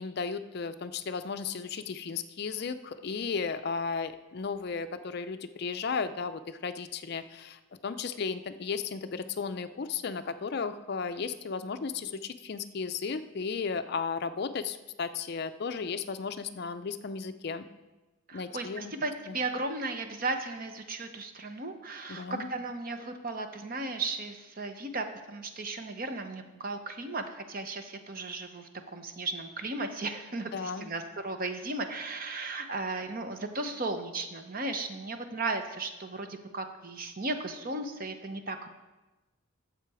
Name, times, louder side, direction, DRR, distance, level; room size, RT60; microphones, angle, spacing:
voice 1, 0.0-17.7 18.3-18.9 19.3-19.4 22.1-22.5 30.5-30.9, left 5 dB, 50° left, 10 dB, 0.4 m, -35 dB
voice 2, 18.3-38.7, right 2 dB, 40° right, 7 dB, 0.8 m, -35 dB
11.5 x 7.5 x 4.8 m, 1.1 s
head